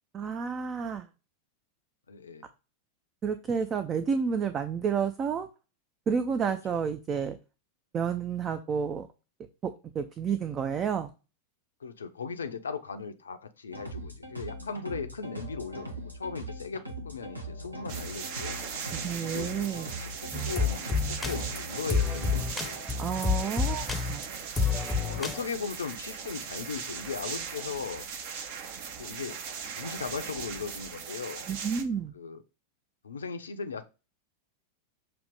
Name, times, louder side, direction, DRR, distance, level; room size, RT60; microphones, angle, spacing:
voice 1, 0.1-1.0 3.2-5.5 6.1-7.4 7.9-9.1 9.6-11.1 18.9-19.9 23.0-24.2 31.5-32.1, right 6 dB, 25° right, 0.6 m, -30 dB
voice 2, 2.1-2.5 6.4-6.9 11.8-18.6 19.2-22.9 23.4-23.5 24.8-28.1 29.0-29.4 29.8-31.5 32.1-32.4 33.0-33.8, left 5 dB, 70° left, 0.7 m, -38 dB
sound 1, 13.7-22.5, right 1 dB, 85° right, 1.1 m, -41 dB
sound 2, 17.9-31.8, right 6 dB, 50° right, 1.1 m, -39 dB
sound 3, 20.3-25.5, left 5 dB, 10° left, 0.8 m, -29 dB
6.9 x 2.9 x 5.1 m
figure-of-eight pair, 90°, 0 cm